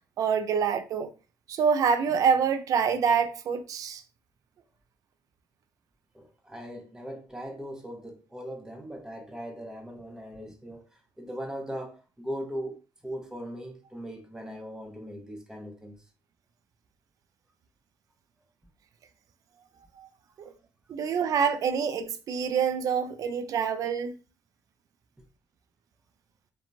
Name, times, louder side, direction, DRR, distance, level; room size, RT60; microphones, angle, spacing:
voice 1, 0.2-1.1 1.5-4.0 20.0-20.1 20.9-24.1, right 6 dB, 50° right, 0.3 m, -26 dB
voice 2, 6.1-16.1 20.4-20.5 21.1-21.2 25.2-25.3, equal, 10° right, 0.9 m, -39 dB
2.8 x 2.2 x 2.6 m
supercardioid pair, 70°, 8 cm